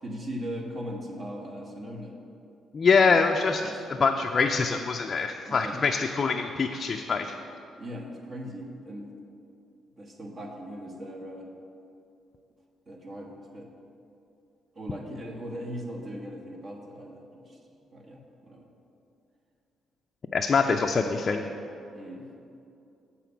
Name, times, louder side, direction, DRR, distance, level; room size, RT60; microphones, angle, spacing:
voice 1, 0.0-2.2 2.9-3.2 3.6-4.1 5.4-5.8 7.8-9.1 10.0-11.5 12.9-13.7 14.7-17.6 17.9-18.7 21.9-22.3, equal, 40° right, 1 dB, 1.2 m, -39 dB
voice 2, 2.7-3.6 3.9-7.3 20.3-21.4, left 5 dB, 40° left, 3 dB, 0.4 m, -24 dB
7.5 x 4.2 x 6.9 m, 2.7 s
cardioid pair, 90°, 0 cm